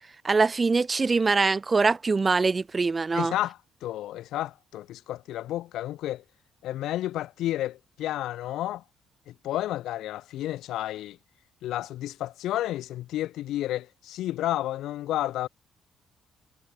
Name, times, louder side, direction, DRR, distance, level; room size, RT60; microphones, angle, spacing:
voice 1, 0.2-3.3, right 4 dB, 30° right, 0.7 m, -23 dB
voice 2, 3.1-6.2 6.6-8.8 9.3-11.2 11.6-15.5, left 14 dB, 85° left, 1.2 m, -31 dB
cardioid pair, 90°, 0 cm